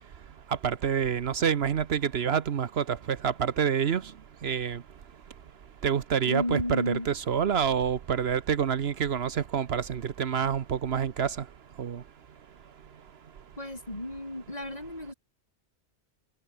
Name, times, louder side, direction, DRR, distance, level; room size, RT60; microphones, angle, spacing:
voice 1, 0.6-4.0 4.4-4.8 5.8-11.4 11.8-12.0, right 7 dB, 65° right, 1.1 m, -27 dB
voice 2, 6.2-7.1 13.6-15.1, left 1 dB, 35° left, 5.2 m, -33 dB
omnidirectional pair, 1.1 m